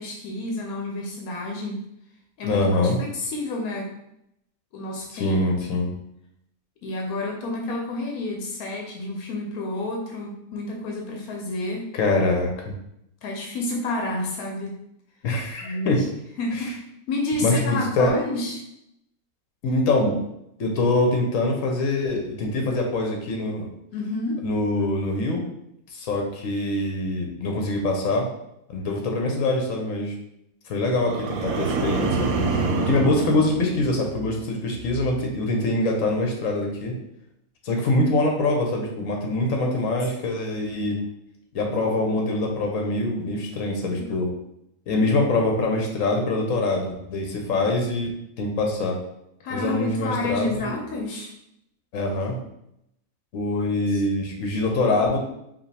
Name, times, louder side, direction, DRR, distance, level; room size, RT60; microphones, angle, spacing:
voice 1, 0.0-1.8 2.4-2.7 3.0-3.9 4.7-5.4 5.7-5.8 6.8-11.9 13.2-14.8 15.6-16.0 16.4-16.8 17.1-18.6 23.9-24.4 39.6-40.0 43.9-44.1 49.4-51.3 53.9-54.0, left 2 dB, 85° left, 0 dB, 1.2 m, -29 dB
voice 2, 2.4-3.0 5.1-5.9 11.9-12.8 15.2-16.0 17.4-18.1 19.6-20.2 20.6-23.7 24.4-25.4 25.9-28.3 28.7-30.1 30.7-32.3 32.9-36.9 37.6-41.0 41.5-44.3 44.9-48.1 48.4-49.0 49.5-50.7 51.9-52.4 53.3-55.2, left 2 dB, 70° left, 1 dB, 1.3 m, -24 dB
sound 1, 31.0-34.4 34.8-35.2, right 3 dB, 80° right, 1.0 m, -27 dB
5.1 x 2.8 x 3.4 m, 0.80 s
omnidirectional pair, 1.5 m